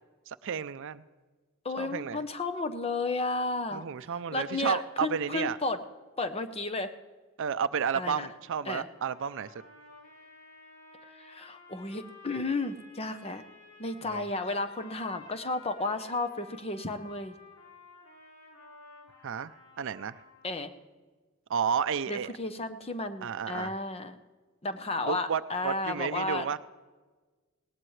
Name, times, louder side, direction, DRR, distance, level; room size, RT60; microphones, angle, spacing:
voice 1, 0.3-1.0 1.8-2.2 3.7-5.6 7.4-9.5 14.0-14.3 19.2-20.2 21.5-22.3 23.2-23.8 25.0-26.6, right 7 dB, 60° right, 14 dB, 0.5 m, -32 dB
voice 2, 1.6-3.8 4.3-5.8 6.2-6.9 7.9-8.3 8.7-8.8 11.1-13.4 13.8-17.3 20.4-20.7 22.1-24.2 24.6-26.6, left 2 dB, 30° left, 9 dB, 0.8 m, -33 dB
sound 1, 9.0-20.7, left 3 dB, 90° left, 5.2 m, -53 dB
19.5 x 18.0 x 3.2 m, 1.3 s
head